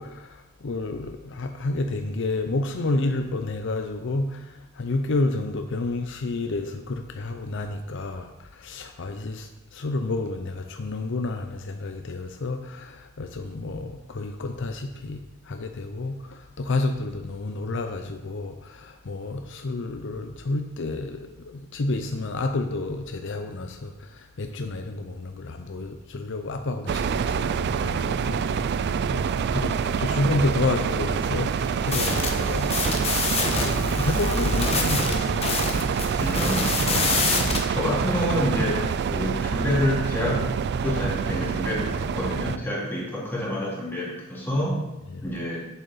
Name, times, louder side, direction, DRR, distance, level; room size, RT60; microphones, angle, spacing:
voice 1, 0.0-35.9 45.1-45.2, left 2 dB, 60° left, 5 dB, 0.6 m, -30 dB
sound 1, 26.9-42.6, right 6 dB, 55° right, 0.3 m, -26 dB
sound 2, 31.9-37.6, left 3 dB, 30° left, 1.2 m, -26 dB
voice 2, 36.2-37.2 37.7-40.5 40.8-44.8 45.2-45.7, equal, 10° left, -6 dB, 2.5 m, -27 dB
8.3 x 7.4 x 4.1 m, 0.94 s
head